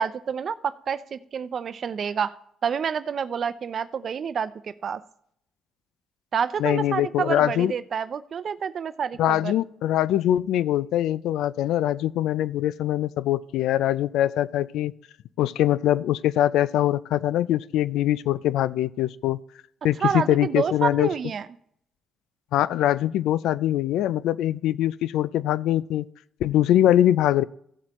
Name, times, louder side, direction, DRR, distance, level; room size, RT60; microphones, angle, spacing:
voice 1, 0.0-2.4 2.6-5.0 6.3-9.5 20.0-21.5, right 7 dB, 55° right, 14 dB, 0.6 m, -28 dB
voice 2, 6.6-7.7 9.2-14.9 15.4-19.4 19.8-21.1 22.5-26.1 26.4-27.4, left 12 dB, 85° left, 18 dB, 0.3 m, -23 dB
15.5 x 7.5 x 3.0 m, 0.69 s
cardioid pair, 90°, 0 cm